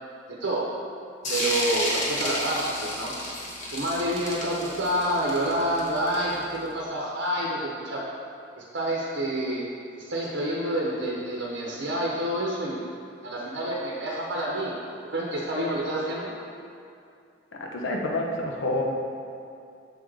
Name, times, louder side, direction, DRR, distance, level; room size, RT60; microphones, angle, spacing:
voice 1, 0.3-0.7 1.3-3.1 3.7-8.1 8.5-9.6 10.0-12.8 13.2-14.8 15.1-16.3, right 1 dB, 75° right, -4 dB, 0.9 m, -28 dB
sound 1, 1.2-6.6, left 1 dB, 40° left, 1.3 m, -31 dB
voice 2, 17.6-18.8, left 2 dB, 85° left, 0 dB, 0.9 m, -28 dB
7.0 x 4.6 x 3.8 m, 2.5 s
head